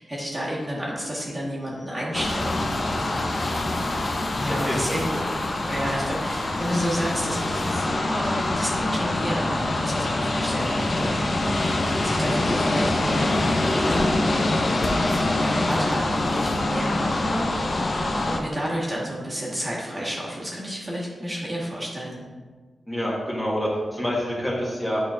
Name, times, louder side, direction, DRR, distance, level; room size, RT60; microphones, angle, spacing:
voice 1, 0.0-2.7 4.3-5.2 5.6-13.5 15.3-22.2, equal, 25° right, -6 dB, 1.7 m, -31 dB
sound 1, 2.1-18.4, left 2 dB, 45° left, 0.7 m, -24 dB
voice 2, 4.6-5.3 22.9-25.0, equal, 10° left, -6 dB, 1.5 m, -28 dB
8.5 x 4.3 x 2.6 m, 1.4 s
cardioid pair, 80°, 0 cm